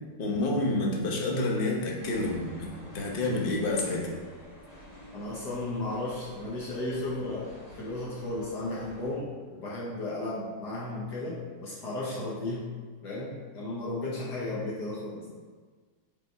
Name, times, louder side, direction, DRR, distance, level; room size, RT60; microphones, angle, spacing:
voice 1, 0.2-2.5 2.8-4.1, left 2 dB, 45° left, -1 dB, 0.7 m, -28 dB
sound 1, 2.0-9.2, equal, 20° left, 1.7 m, -49 dB
voice 2, 5.1-7.5 7.8-12.7 13.0-15.2, left 2 dB, 65° left, -6 dB, 1.5 m, -34 dB
5.2 x 4.4 x 4.5 m, 1.5 s
omnidirectional pair, 2.0 m